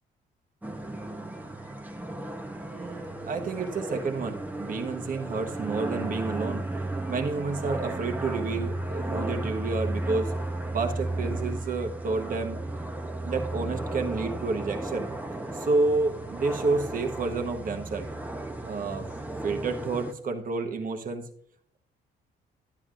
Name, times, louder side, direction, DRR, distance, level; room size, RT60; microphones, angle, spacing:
sound 1, 0.6-20.1, right 2 dB, 10° right, 0.9 m, -34 dB
voice 1, 2.6-6.7 7.1-10.3 10.7-12.6 13.2-15.1 15.5-18.1 18.6-19.1 19.4-21.3, right 3 dB, 45° right, 4 dB, 1.2 m, -30 dB
11.0 x 9.7 x 2.5 m, 0.63 s
cardioid pair, 90°, 20 cm